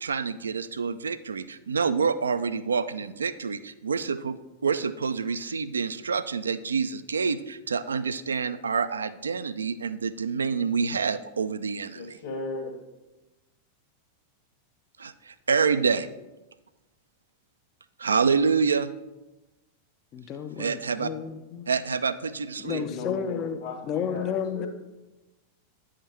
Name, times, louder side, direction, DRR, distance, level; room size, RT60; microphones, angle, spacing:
voice 1, 0.0-4.4 4.6-12.2 15.0-16.1 18.0-18.9 20.6-21.1 21.7-22.8, right 5 dB, 70° right, 13 dB, 0.3 m, -27 dB
voice 2, 11.9-12.7 22.7-24.7, left 3 dB, 55° left, -1 dB, 1.3 m, -36 dB
voice 3, 20.1-21.7 22.6-23.6 23.9-24.7, left 7 dB, 35° left, 9 dB, 0.5 m, -32 dB
9.2 x 5.0 x 4.3 m, 1.0 s
figure-of-eight pair, 90°, 0 cm